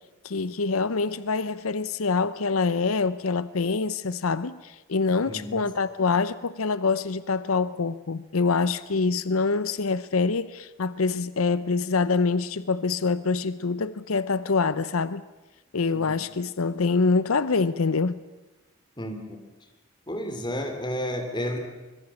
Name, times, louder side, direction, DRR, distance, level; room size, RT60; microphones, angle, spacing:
voice 1, 0.2-15.2 15.7-18.2, left 4 dB, 90° left, 0.7 m, -25 dB
voice 2, 5.3-5.6 15.9-16.1 19.0-19.4 20.1-21.6, equal, 20° left, 3.1 m, -31 dB
25.5 x 21.5 x 7.2 m
head